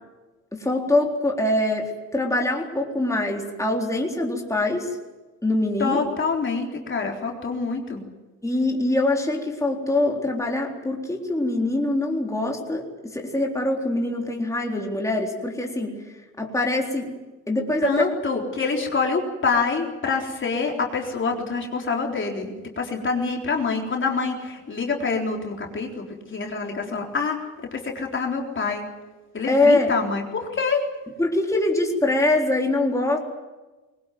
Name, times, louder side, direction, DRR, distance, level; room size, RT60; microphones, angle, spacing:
voice 1, 0.5-5.0 5.4-6.0 8.4-16.0 16.4-17.1 17.5-17.9 29.5-30.0 31.2-33.2, left 2 dB, 10° left, 0 dB, 3.9 m, -23 dB
voice 2, 5.8-8.0 17.8-27.4 27.7-28.8 29.3-30.8, left 4 dB, 40° left, 1 dB, 3.9 m, -26 dB
22.0 x 19.0 x 9.4 m, 1.2 s
cardioid pair, 90°, 30 cm